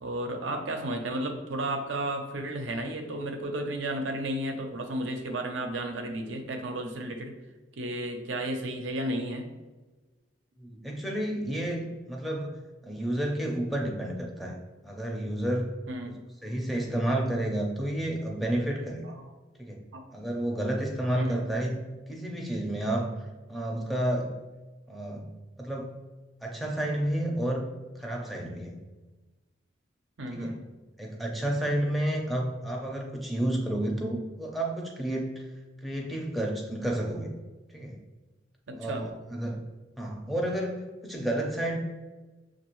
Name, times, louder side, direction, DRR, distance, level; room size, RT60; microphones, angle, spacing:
voice 1, 0.0-7.3 7.8-9.5 15.9-16.2 19.0-19.3 19.9-20.0 21.1-21.5 30.2-30.6 38.7-39.1, right 1 dB, 80° right, 4 dB, 0.6 m, -33 dB
voice 2, 10.6-12.5 12.8-14.6 14.8-15.7 16.0-16.1 16.4-19.1 19.6-19.8 20.1-21.8 22.1-23.1 23.5-24.3 24.9-25.3 25.6-25.9 26.4-27.7 28.0-28.8 30.3-30.6 31.0-35.5 35.8-37.3 37.7-38.0 38.8-39.6 40.0-41.8, right 1 dB, ahead, -1 dB, 0.5 m, -30 dB
6.1 x 2.5 x 3.0 m, 1.2 s
head